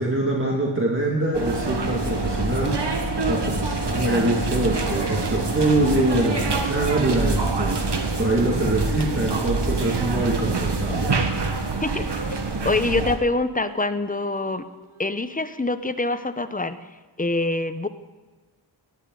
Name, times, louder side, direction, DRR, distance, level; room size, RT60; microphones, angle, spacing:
voice 1, 0.0-11.1, right 1 dB, 25° right, -2 dB, 2.3 m, -24 dB
sound 1, 1.3-13.2, right 3 dB, 55° right, 1.6 m, -26 dB
sound 2, 4.2-11.6 12.1-13.0 13.6-13.8 14.1-15.1, right 5 dB, 75° right, 1.0 m, -33 dB
voice 2, 11.8-12.4 12.6-14.7 15.0-16.8 17.2-17.9, left 2 dB, 15° left, 11 dB, 0.8 m, -25 dB
16.5 x 10.5 x 4.0 m, 1.3 s
cardioid pair, 45°, 49 cm